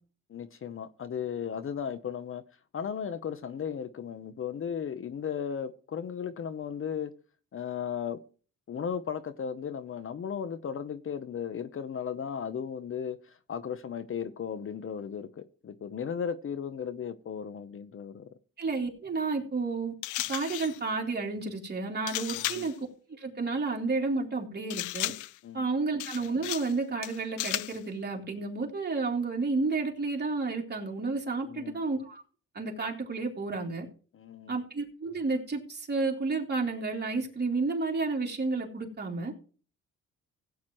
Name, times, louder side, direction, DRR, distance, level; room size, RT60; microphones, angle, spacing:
voice 1, 0.3-2.4 2.7-7.1 7.5-8.2 8.7-18.3 22.3-22.7 25.4-25.7 31.4-31.8 34.1-34.6, left 7 dB, 45° left, 0.9 m, -36 dB
voice 2, 18.6-19.9 20.3-22.7 23.1-25.1 25.5-32.2 32.5-33.9 34.5-39.3, right 3 dB, 35° right, 3.3 m, -31 dB
sound 1, 20.0-20.8 22.1-22.8 24.7-25.4 26.0-26.8 27.0-27.8, left 17 dB, 80° left, 0.5 m, -34 dB
16.5 x 9.3 x 3.1 m
cardioid pair, 90°, 30 cm